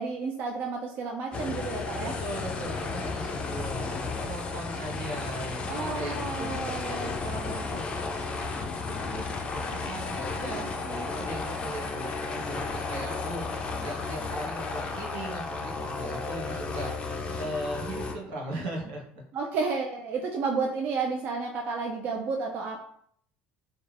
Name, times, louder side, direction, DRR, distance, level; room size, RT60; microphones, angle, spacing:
voice 1, 0.0-2.2 5.7-7.1 10.5-11.1 19.3-22.8, right 4 dB, 50° right, 1 dB, 0.3 m, -32 dB
sound 1, 1.3-18.1, left 4 dB, 30° left, 0.4 m, -33 dB
voice 2, 2.0-10.7 11.0-13.4 13.8-16.9 17.3-19.0, right 1 dB, 80° right, -1 dB, 0.8 m, -38 dB
2.3 x 2.2 x 3.2 m, 0.65 s
cardioid pair, 125°, 4 cm